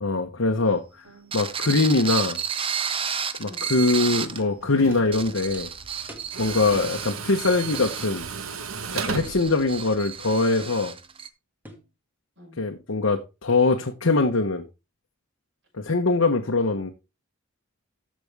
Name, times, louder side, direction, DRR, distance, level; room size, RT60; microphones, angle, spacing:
voice 1, 0.0-0.8 1.3-2.4 3.4-5.7 6.4-8.3 8.9-10.9 12.6-14.7 15.8-16.9, left 3 dB, 85° left, 1.1 m, -22 dB
voice 2, 1.0-1.5 3.4-3.7 6.7-6.9 12.4-12.6 16.7-16.9, equal, 60° right, 6.2 m, -49 dB
sound 1, 1.3-4.4 4.9-11.3, right 7 dB, 25° right, 0.7 m, -32 dB
sound 2, 3.4-3.5 3.8-4.0 4.4-4.5 4.9-5.1 5.5-5.7 6.1-6.3 6.7-7.0 7.7-8.0 9.3-9.5 10.6-10.9 11.6-11.9, equal, 10° right, 1.7 m, -44 dB
Tools, 4.1-10.4, right 5 dB, 90° right, 1.1 m, -36 dB
14.0 x 5.3 x 3.5 m
head